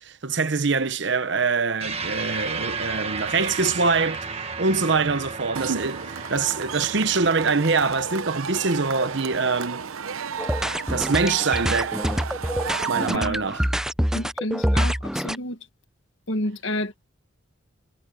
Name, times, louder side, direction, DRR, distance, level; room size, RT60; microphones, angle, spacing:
voice 1, 0.0-9.9 10.9-12.0 12.9-13.6, right 4 dB, 60° right, 0.9 m, -24 dB
sound 1, 1.8-10.5, right 4 dB, 30° right, 1.6 m, -34 dB
Cheering / Crowd, 5.5-13.2, right 6 dB, 90° right, 0.8 m, -32 dB
sound 2, 10.4-15.4, equal, 5° right, 0.5 m, -25 dB
voice 2, 14.1-15.6 16.3-17.1, left 1 dB, 70° left, 1.7 m, -30 dB
head